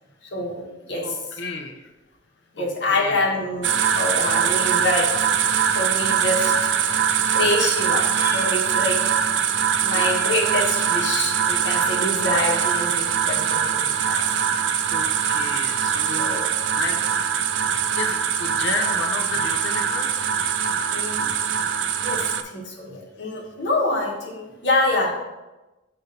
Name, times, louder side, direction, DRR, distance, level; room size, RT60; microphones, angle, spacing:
voice 1, 0.3-1.2 2.5-5.3 5.7-6.7 7.3-9.0 9.8-14.2 16.1-16.5 20.9-21.3 22.0-25.1, left 2 dB, 65° left, -2 dB, 1.3 m, -26 dB
voice 2, 1.0-1.7 2.6-3.2 11.7-11.8 14.9-16.4 16.7-17.0 18.0-20.3, left 3 dB, 85° left, 4 dB, 0.8 m, -32 dB
sound 1, 3.6-22.4, right 8 dB, 75° right, 0.4 m, -22 dB
6.6 x 2.8 x 5.3 m, 1.1 s
head